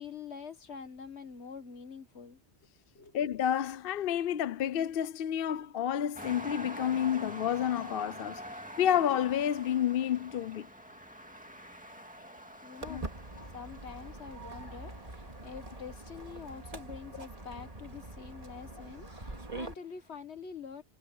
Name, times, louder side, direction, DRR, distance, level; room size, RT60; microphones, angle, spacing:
voice 1, 0.0-2.4 3.0-3.2 12.6-13.0 13.5-20.8, left 6 dB, 85° left, 1.7 m, -46 dB
voice 2, 3.1-8.4 8.8-10.7 12.9-13.0, left 10 dB, 65° left, 0.8 m, -30 dB
sound 1, 6.2-19.0 19.6-19.7, equal, 5° right, 2.2 m, -47 dB
Walk footsteps, 12.8-19.7, right 2 dB, 35° right, 2.3 m, -44 dB
omnidirectional pair, 1.1 m